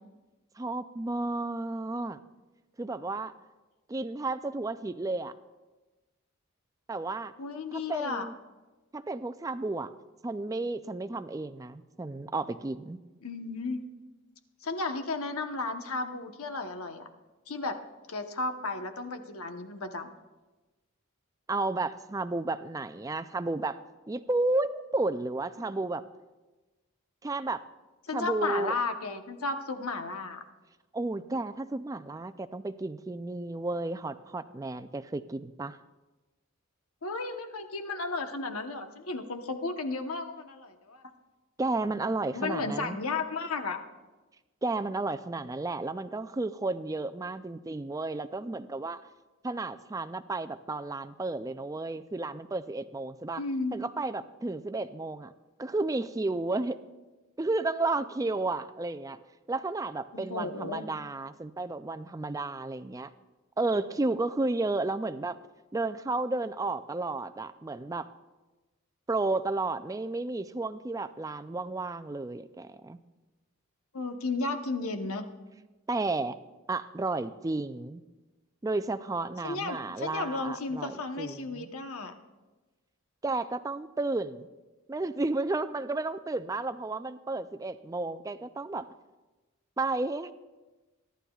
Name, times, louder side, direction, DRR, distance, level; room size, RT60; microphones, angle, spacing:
voice 1, 0.6-2.2 2.8-3.3 3.9-5.3 6.9-7.3 7.7-8.3 8.9-9.9 10.2-13.0 21.5-23.8 24.1-26.0 27.2-27.6 28.1-28.8 30.9-35.8 41.6-43.0 44.6-49.0 49.4-53.4 53.7-55.3 55.6-56.8 57.4-59.2 59.5-63.1 63.6-65.4 65.7-68.1 69.1-73.0 75.9-76.4 76.7-78.0 78.6-81.7 83.2-84.5 84.9-88.9 89.8-90.3, right 2 dB, 15° right, 12 dB, 0.3 m, -32 dB
voice 2, 7.4-8.3 13.2-13.8 14.6-17.1 17.5-17.7 18.1-20.2 28.1-30.4 37.0-41.0 42.3-43.8 53.4-53.7 60.1-60.9 73.9-75.3 79.4-82.1, left 3 dB, 80° left, 6 dB, 1.0 m, -34 dB
23.0 x 11.5 x 2.4 m, 1.2 s
head